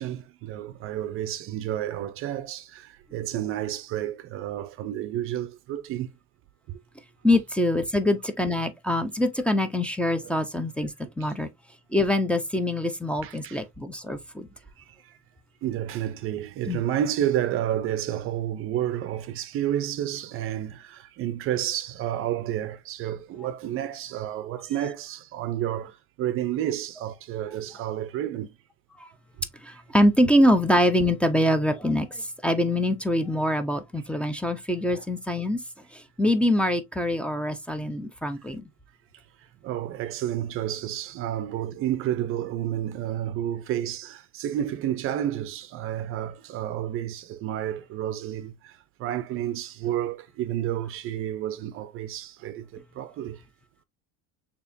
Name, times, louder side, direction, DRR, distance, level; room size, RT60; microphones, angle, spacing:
voice 1, 0.0-6.1 6.7-6.8 10.2-10.3 11.2-11.3 13.2-13.6 14.8-15.2 15.6-28.5 34.9-35.0 39.6-53.4, right 11 dB, 45° right, 0.5 m, -30 dB
voice 2, 7.2-11.5 11.9-14.5 16.7-16.8 29.0-29.1 29.6-35.6 35.9-38.6, left 1 dB, 5° left, 0.6 m, -24 dB
6.6 x 2.9 x 2.6 m
cardioid pair, 135°, 29 cm